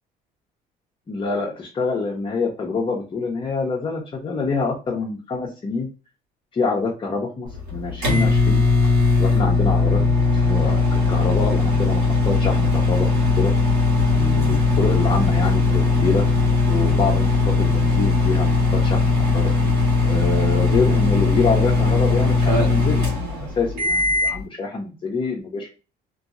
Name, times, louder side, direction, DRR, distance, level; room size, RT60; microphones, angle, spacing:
voice 1, 1.1-5.9 6.5-8.6 9.2-10.0 10.3-13.1 13.3-13.5 14.1-16.2 16.7-19.5 20.0-25.7, left 4 dB, 30° left, -3 dB, 0.9 m, -26 dB
sound 1, 7.5-24.4, left 4 dB, 85° right, 1.5 m, -19 dB
2.9 x 2.7 x 2.5 m, 0.32 s
cardioid pair, 110°, 17 cm